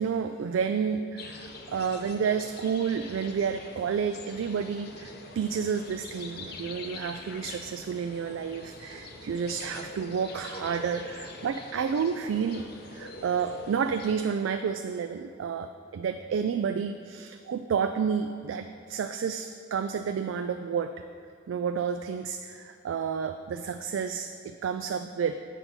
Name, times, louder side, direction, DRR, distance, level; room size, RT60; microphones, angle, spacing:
voice 1, 0.0-12.6 12.9-20.9 21.5-25.3, right 6 dB, 90° right, 8 dB, 0.3 m, -30 dB
sound 1, 1.2-14.2, left 2 dB, 55° left, 0.6 m, -44 dB
8.2 x 5.7 x 4.3 m, 2.5 s
head